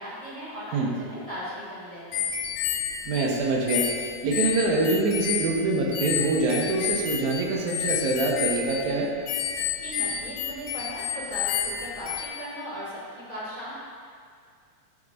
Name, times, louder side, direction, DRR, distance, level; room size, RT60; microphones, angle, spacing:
voice 1, 0.0-2.3 9.5-13.8, equal, 20° right, -10 dB, 1.6 m, -38 dB
sound 1, 2.1-12.3, left 8 dB, 85° left, 2.1 m, -30 dB
voice 2, 3.1-3.8 4.2-9.1, right 3 dB, 80° right, -2 dB, 2.4 m, -25 dB
12.0 x 5.8 x 2.6 m, 2.1 s
omnidirectional pair, 3.4 m